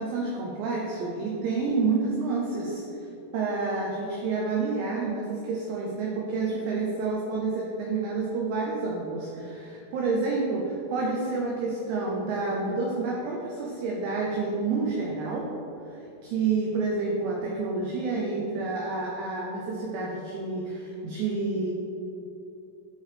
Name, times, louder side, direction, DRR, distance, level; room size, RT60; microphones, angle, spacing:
voice 1, 0.0-3.1 3.3-15.5 15.9-21.7, right 3 dB, 85° right, -2 dB, 2.6 m, -29 dB
12.5 x 4.6 x 3.4 m, 3.0 s
omnidirectional pair, 6.0 m